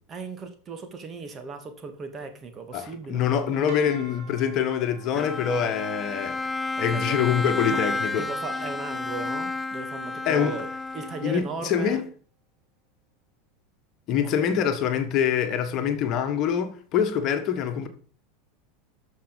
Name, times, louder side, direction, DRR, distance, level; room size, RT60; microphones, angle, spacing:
voice 1, 0.1-3.3 6.5-7.2 7.7-7.9 8.2-10.7 10.9-12.0 14.5-14.6, right 4 dB, 30° right, 2.2 m, -37 dB
voice 2, 2.7-6.4 6.8-8.3 10.2-10.6 11.2-12.0 14.1-17.9, left 8 dB, 45° left, 1.5 m, -25 dB
sound 1, 3.7-9.6, right 5 dB, 50° right, 3.0 m, -51 dB
Bowed string instrument, 5.1-11.6, left 3 dB, 15° left, 0.5 m, -31 dB
13.5 x 5.7 x 5.3 m
figure-of-eight pair, 80°, 0 cm